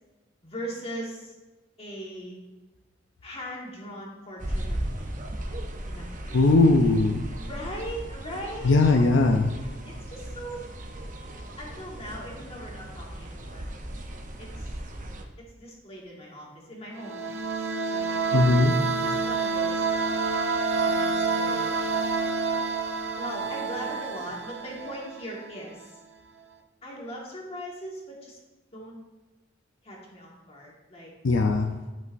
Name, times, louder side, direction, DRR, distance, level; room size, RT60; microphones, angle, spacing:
voice 1, 0.4-1.3 1.8-2.4 3.2-5.2 5.9-6.4 7.4-9.3 9.8-10.6 11.6-13.6 14.4-14.7 15.4-17.3 17.9-18.5 19.0-19.9 20.8-21.7 23.2-25.9 26.8-28.4 28.7-29.0 29.8-31.1, equal, 30° left, -3 dB, 1.7 m, -40 dB
sound 1, 4.4-15.3, right 1 dB, 40° right, 0.7 m, -37 dB
voice 2, 6.3-7.2 8.6-9.5 18.3-18.8 31.2-31.7, left 3 dB, 75° left, 4 dB, 0.5 m, -19 dB
sound 2, 16.9-25.5, right 4 dB, 75° right, 0.7 m, -28 dB
11.0 x 5.3 x 2.6 m, 1.2 s
head